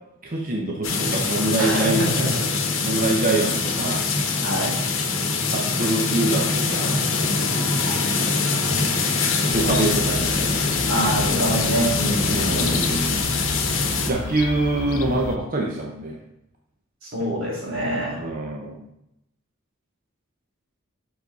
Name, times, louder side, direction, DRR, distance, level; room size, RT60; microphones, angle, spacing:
voice 1, 0.2-2.0 2.8-4.0 5.5-7.0 9.4-10.9 12.3-13.3 14.1-16.2 18.1-18.8, right 2 dB, 40° right, 0 dB, 0.7 m, -25 dB
sound 1, 0.8-14.1, left 4 dB, 65° left, 1.0 m, -23 dB
voice 2, 1.6-2.7 4.4-4.8 7.8-8.0 10.9-12.8 17.0-18.2, equal, 90° right, -5 dB, 2.7 m, -26 dB
Fowl / Gull seagull, 9.5-15.4, left 3 dB, 85° left, 0.5 m, -33 dB
6.2 x 4.9 x 4.1 m, 0.83 s
head